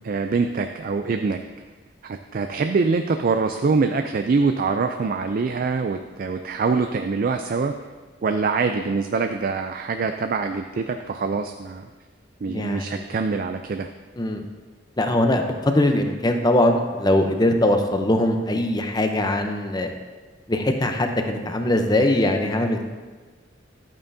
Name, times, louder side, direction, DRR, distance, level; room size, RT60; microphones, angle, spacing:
voice 1, 0.0-1.4 2.0-7.7 8.2-11.9 12.4-13.9, right 4 dB, 50° right, 7 dB, 0.4 m, -24 dB
voice 2, 12.5-13.0 14.2-14.5 15.0-19.9 20.5-22.9, left 1 dB, 20° left, 5 dB, 0.7 m, -21 dB
11.5 x 8.9 x 2.7 m, 1.3 s
head